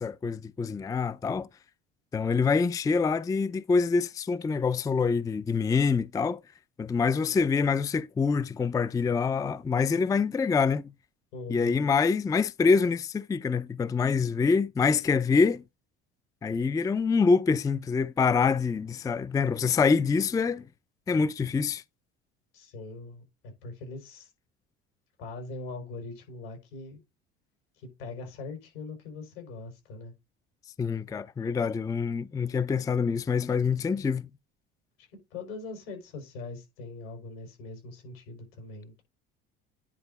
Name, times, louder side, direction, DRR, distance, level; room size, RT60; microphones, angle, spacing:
voice 1, 0.0-1.5 2.1-6.4 6.8-10.9 11.5-15.6 16.4-20.6 21.1-21.8 30.8-34.3, left 5 dB, 10° left, 0.4 m, -25 dB
voice 2, 11.3-11.9 22.5-23.2 23.6-24.3 25.2-27.0 27.8-30.1 35.0-39.0, left 3 dB, 85° left, 4.8 m, -41 dB
10.0 x 4.0 x 4.0 m
hypercardioid pair, 80°, 29 cm